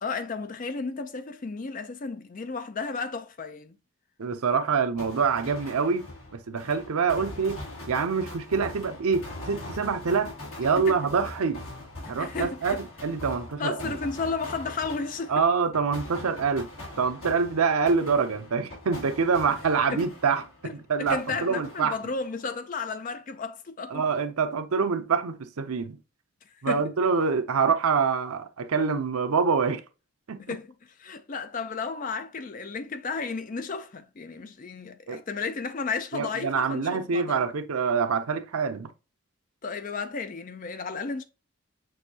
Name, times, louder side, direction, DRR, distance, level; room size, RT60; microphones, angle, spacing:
voice 1, 0.0-3.8 10.8-11.0 12.1-12.8 13.6-15.4 19.5-19.6 19.9-20.1 20.6-20.7 21.0-24.0 26.6-26.9 30.4-37.5 39.6-41.2, left 4 dB, 35° left, 0.5 m, -33 dB
voice 2, 4.2-6.1 6.3-7.6 7.9-10.3 10.6-11.6 12.1-13.8 15.3-16.7 17.0-22.0 23.9-26.0 26.6-29.8 30.3-30.4 35.1-35.2 36.1-38.9, right 5 dB, 85° right, 0.6 m, -26 dB
sound 1, 5.0-20.7 21.1-22.4, left 2 dB, 70° left, 2.3 m, -42 dB
6.3 x 2.6 x 2.8 m
head